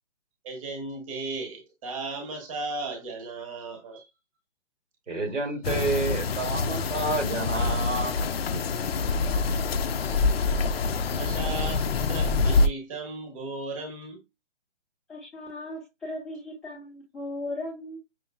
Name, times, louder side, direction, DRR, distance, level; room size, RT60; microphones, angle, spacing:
voice 1, 0.4-4.1 9.8-10.2 11.2-14.2, right 3 dB, 25° right, 1.1 m, -36 dB
voice 2, 5.1-8.1 8.5-8.6, right 3 dB, 75° right, 2.2 m, -29 dB
sound 1, 5.6-12.7, left 4 dB, 55° left, 0.5 m, -26 dB
voice 3, 15.1-18.0, left 1 dB, ahead, 0.8 m, -37 dB
6.1 x 2.8 x 2.2 m
hypercardioid pair, 165°, 36 cm